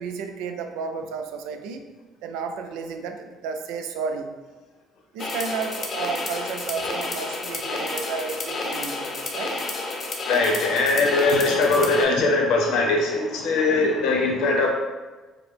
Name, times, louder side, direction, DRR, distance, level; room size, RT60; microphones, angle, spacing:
voice 1, 0.0-1.9 2.2-4.3 5.1-9.6, right 5 dB, 85° right, 6 dB, 0.4 m, -32 dB
sound 1, 5.2-12.0, left 2 dB, 35° left, 0.6 m, -30 dB
voice 2, 10.3-14.7, left 3 dB, 80° left, 0 dB, 0.7 m, -21 dB
4.6 x 2.1 x 3.4 m, 1.3 s
cardioid pair, 120°, 0 cm